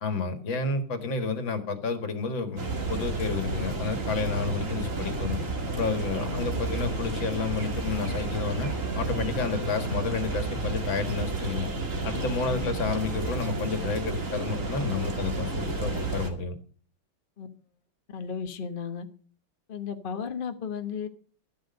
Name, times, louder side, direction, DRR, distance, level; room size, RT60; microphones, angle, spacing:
voice 1, 0.0-2.6 2.9-5.4 5.7-11.7 12.0-16.6, left 4 dB, 60° left, 8 dB, 2.4 m, -30 dB
sound 1, 2.6-16.3, right 2 dB, 35° right, 2.5 m, -31 dB
voice 2, 6.2-6.5 12.5-12.8 17.4-17.5 18.1-19.1 19.7-21.1, left 6 dB, 35° left, 7 dB, 0.9 m, -35 dB
12.5 x 12.0 x 5.3 m, 0.43 s
omnidirectional pair, 2.4 m